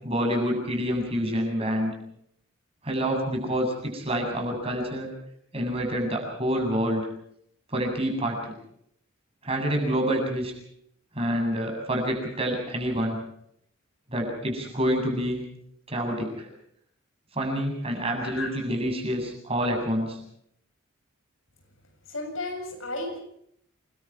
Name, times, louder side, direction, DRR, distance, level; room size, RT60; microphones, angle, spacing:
voice 1, 0.0-1.9 2.8-5.1 5.5-7.0 7.7-8.6 9.4-10.5 11.1-13.2 14.1-15.4 15.9-16.5 17.3-20.2, equal, 30° right, 2 dB, 7.7 m, -27 dB
voice 2, 18.2-18.5 22.1-23.2, left 2 dB, 70° left, 4 dB, 7.5 m, -33 dB
28.5 x 22.5 x 4.9 m, 0.69 s
head